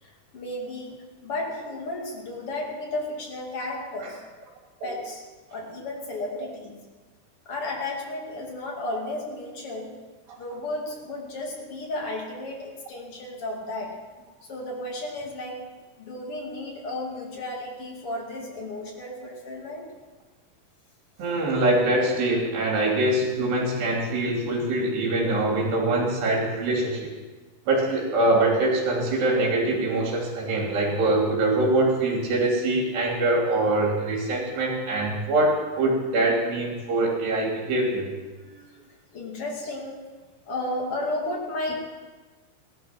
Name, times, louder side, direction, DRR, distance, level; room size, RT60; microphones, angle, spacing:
voice 1, 0.0-4.3 4.8-5.2 5.5-6.8 7.5-10.1 10.4-14.0 14.5-19.9 38.4-40.1 40.5-41.8, left 2 dB, 40° left, -1 dB, 2.9 m, -33 dB
voice 2, 21.2-27.1 27.7-38.1, right 2 dB, 75° right, -1 dB, 4.9 m, -24 dB
17.0 x 13.0 x 6.0 m, 1.3 s
omnidirectional pair, 4.9 m